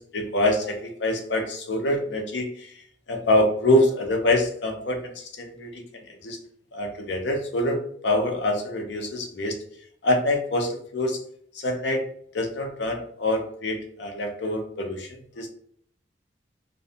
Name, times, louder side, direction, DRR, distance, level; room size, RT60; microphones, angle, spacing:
voice 1, 0.0-2.8 3.1-6.4 6.7-7.8 8.0-9.6 10.0-11.2 11.5-12.0 12.3-15.5, left 1 dB, 70° left, 4 dB, 0.6 m, -25 dB
2.6 x 2.2 x 2.7 m, 0.64 s
head